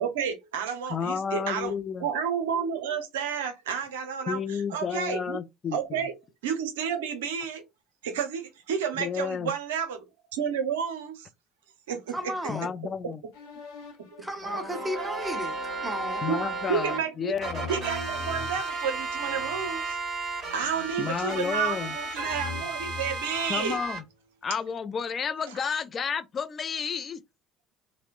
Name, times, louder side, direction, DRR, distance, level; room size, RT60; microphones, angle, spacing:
voice 1, 0.0-1.7 2.0-5.4 5.7-6.2 6.4-7.6 8.0-10.1 10.3-11.3 11.9-12.3 16.3-16.4 16.7-17.3 17.7-20.0 20.5-23.8, right 7 dB, 75° right, 0.5 m, -31 dB
voice 2, 0.9-2.1 4.3-6.0 9.0-9.5 12.5-13.2 16.2-17.7 21.0-22.0 23.5-24.0 24.4-27.2, left 6 dB, 40° left, 0.3 m, -31 dB
voice 3, 12.1-12.7 14.2-16.2, equal, 10° right, 0.7 m, -34 dB
sound 1, 13.3-18.6 19.2-19.7 20.4-21.8 22.2-24.1, left 4 dB, 70° left, 0.7 m, -43 dB
sound 2, 14.4-17.0 17.4-24.0, right 3 dB, 50° right, 1.4 m, -33 dB
2.9 x 2.0 x 2.3 m
hypercardioid pair, 60°, 0 cm